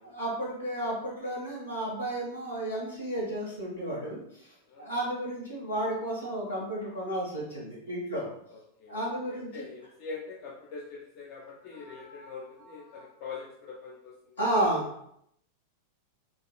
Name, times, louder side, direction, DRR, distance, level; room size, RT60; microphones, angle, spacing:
voice 1, 0.1-4.2 4.8-8.3 8.9-9.6 11.7-12.3 12.9-13.0 14.4-15.0, right 1 dB, 75° left, -4 dB, 1.2 m, -32 dB
voice 2, 4.7-5.1 8.5-14.5, left 4 dB, 40° left, -3 dB, 0.5 m, -44 dB
4.0 x 2.6 x 2.2 m, 0.73 s
figure-of-eight pair, 90°, 0 cm